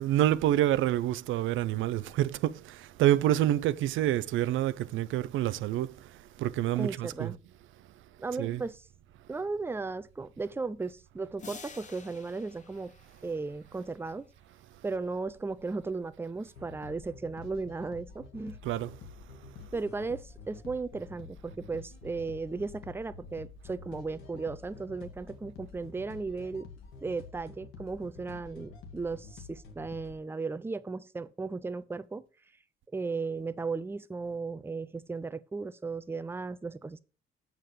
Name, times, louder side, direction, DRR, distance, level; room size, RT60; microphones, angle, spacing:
voice 1, 0.0-5.9 6.4-7.3 8.4-8.6 18.6-18.9, right 13 dB, 80° right, 0.5 m, -27 dB
voice 2, 6.8-7.4 8.2-8.8 9.3-12.9 13.2-14.3 14.8-18.6 19.7-26.7 27.0-32.2 32.9-37.0, right 4 dB, 10° right, 0.5 m, -36 dB
sound 1, 11.4-14.2, left 5 dB, 40° left, 1.2 m, -50 dB
sound 2, 16.5-30.2, left 5 dB, 85° left, 1.8 m, -48 dB
7.4 x 5.6 x 4.8 m
cardioid pair, 90°, 20 cm